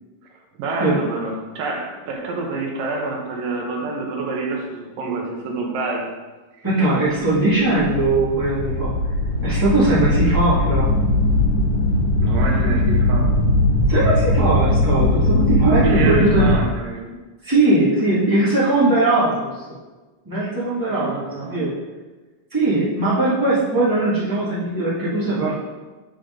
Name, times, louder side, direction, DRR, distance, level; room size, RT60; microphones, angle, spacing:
voice 1, 0.6-6.1 12.2-13.4 15.8-17.1 20.9-21.6, right 3 dB, 80° right, 0 dB, 2.7 m, -27 dB
voice 2, 6.6-8.9 9.4-10.9 13.9-16.5 17.4-19.8 20.2-21.7 22.5-25.6, right 2 dB, 20° right, -10 dB, 0.5 m, -20 dB
sound 1, 7.3-16.6, left 1 dB, 80° left, 3.3 m, -19 dB
10.0 x 3.9 x 5.1 m, 1.2 s
omnidirectional pair, 4.0 m